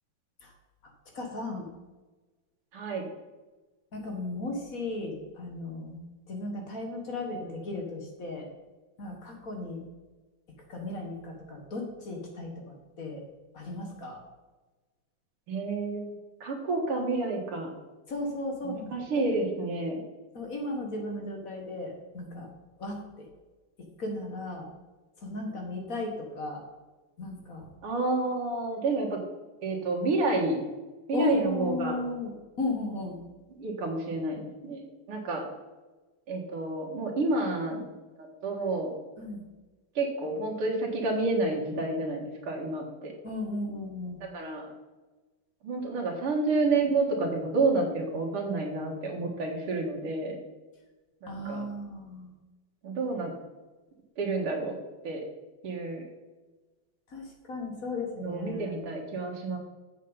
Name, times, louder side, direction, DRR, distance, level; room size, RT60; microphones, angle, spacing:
voice 1, 1.1-1.7 3.9-8.5 9.0-9.8 10.7-13.2 13.5-14.2 18.1-19.2 20.3-22.5 22.8-23.3 24.0-24.7 25.2-26.7 27.2-27.7 31.1-33.2 39.2-39.4 43.2-44.2 51.3-52.3 57.1-58.8, left 2 dB, 45° left, 2 dB, 1.7 m, -35 dB
voice 2, 2.7-3.1 15.5-16.1 16.4-17.7 18.9-20.0 27.8-29.2 29.6-30.6 31.1-32.0 33.6-34.8 35.1-35.4 36.3-37.8 38.4-38.9 40.0-43.1 44.3-44.7 45.6-50.4 51.2-51.6 52.8-53.3 54.2-55.2 55.6-56.0 58.2-59.6, right 3 dB, 85° right, 0 dB, 2.5 m, -29 dB
8.4 x 6.8 x 5.4 m, 1.2 s
omnidirectional pair, 2.4 m